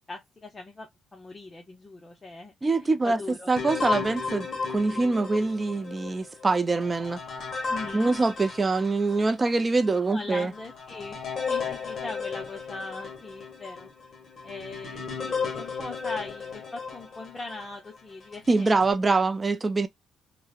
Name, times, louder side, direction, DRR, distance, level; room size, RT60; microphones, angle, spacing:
voice 1, 0.1-3.5 7.7-8.1 10.1-11.2 11.5-13.9 14.4-18.7, left 3 dB, 25° left, 0.6 m, -40 dB
voice 2, 2.6-3.2 3.5-7.2 7.9-10.5 18.5-19.9, right 3 dB, 25° right, 0.4 m, -24 dB
sound 1, 3.6-9.3 9.8-9.9 10.5-17.7 18.3-18.9, left 5 dB, 45° left, 1.2 m, -34 dB
2.9 x 2.1 x 2.3 m
cardioid pair, 90°, 0 cm